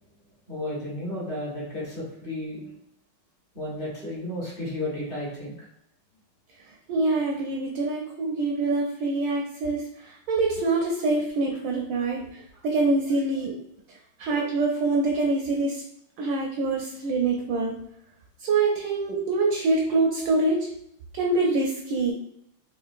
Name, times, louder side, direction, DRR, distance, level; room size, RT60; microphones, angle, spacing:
voice 1, 0.5-2.6 3.5-5.6 12.0-12.6, left 1 dB, 35° left, -6 dB, 0.9 m, -33 dB
voice 2, 6.9-13.6 14.2-15.8 16.2-17.8 18.4-20.7 21.1-22.1, right 3 dB, 75° right, -1 dB, 1.1 m, -25 dB
3.7 x 2.9 x 2.5 m, 0.74 s
omnidirectional pair, 2.3 m